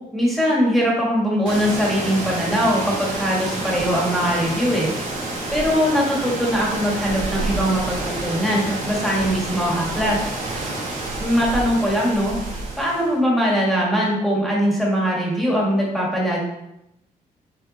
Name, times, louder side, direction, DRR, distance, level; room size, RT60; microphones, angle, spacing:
voice 1, 0.1-4.9 5.5-10.2 11.2-12.4 12.8-16.4, equal, ahead, -4 dB, 1.9 m, -21 dB
sound 1, 1.5-13.1, right 2 dB, 75° right, 2.7 m, -28 dB
7.9 x 5.0 x 4.2 m, 0.86 s
cardioid pair, 175°, 15 cm